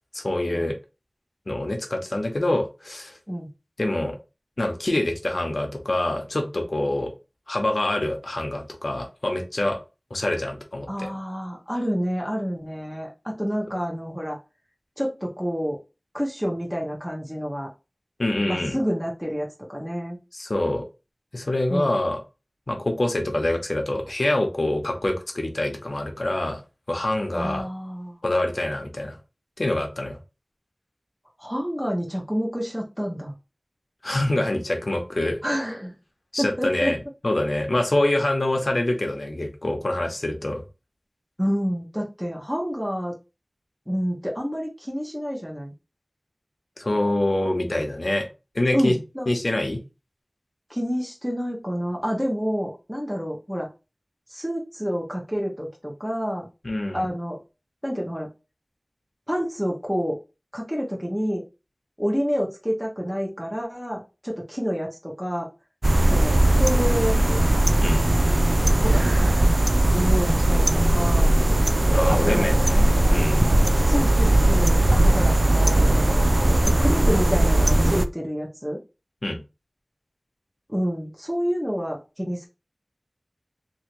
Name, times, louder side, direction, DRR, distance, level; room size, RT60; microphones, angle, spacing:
voice 1, 0.1-0.8 1.5-3.2 3.8-4.2 4.6-7.1 7.5-9.8 10.1-11.1 18.2-18.8 20.3-20.8 21.3-22.2 22.7-26.6 26.9-27.6 28.2-29.2 29.6-30.2 34.0-35.4 36.3-37.0 37.2-40.6 46.8-48.3 48.5-48.9 49.3-49.8 56.6-57.1 67.8-68.1 71.9-73.5 79.2-79.4, left 1 dB, 80° left, 3 dB, 0.8 m, -25 dB
voice 2, 10.9-14.4 15.0-15.8 16.1-17.7 18.5-20.2 21.7-21.9 27.3-28.2 31.4-33.3 35.4-35.9 36.4-36.9 41.4-43.1 43.9-45.7 48.7-49.3 50.7-53.7 54.3-56.5 56.9-57.4 57.8-58.3 59.3-60.1 60.5-61.4 62.0-65.5 66.1-67.4 68.8-69.4 69.9-71.4 72.1-72.6 73.8-76.3 76.7-78.8 80.7-82.5, equal, 5° right, -1 dB, 1.0 m, -28 dB
sound 1, 65.8-78.1, right 1 dB, 55° right, 0.3 m, -19 dB
3.1 x 2.6 x 2.9 m, 0.28 s
wide cardioid pair, 45°, 0 cm